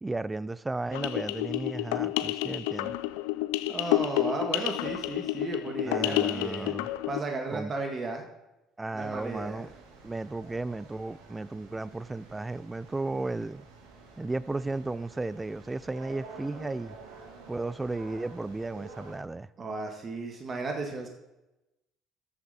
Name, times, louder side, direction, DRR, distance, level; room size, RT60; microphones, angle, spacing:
voice 1, 0.0-3.0 5.8-6.9 7.5-7.7 8.8-9.7 10.0-13.7 14.2-17.0 17.5-19.5, right 2 dB, 15° right, 0.5 m, -34 dB
sound 1, 0.9-7.2, left 16 dB, 85° left, 0.4 m, -30 dB
voice 2, 3.7-6.7 7.1-8.2 8.9-9.6 19.6-21.1, right 3 dB, 40° right, 1.9 m, -34 dB
sound 2, 9.0-19.2, right 3 dB, 85° right, 2.0 m, -50 dB
13.5 x 7.8 x 4.3 m
supercardioid pair, 70°, 0 cm